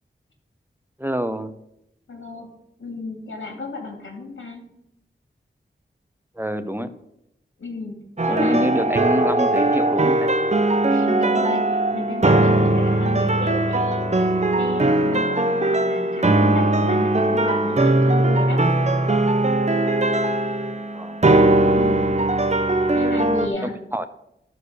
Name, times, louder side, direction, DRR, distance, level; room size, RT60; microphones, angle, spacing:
voice 1, 1.0-1.5 6.3-6.9 8.3-10.3 20.9-21.2 22.9-23.2 23.6-24.1, equal, 10° right, 11 dB, 0.7 m, -26 dB
voice 2, 2.1-2.5 2.8-4.6 7.6-8.0 8.3-8.9 10.9-14.1 14.6-18.6 21.7-22.3 22.9-23.7, left 3 dB, 85° left, 1 dB, 2.8 m, -32 dB
sound 1, 8.2-23.5, right 2 dB, 35° right, 1.0 m, -19 dB
13.0 x 4.7 x 6.6 m, 0.81 s
wide cardioid pair, 65°, 20 cm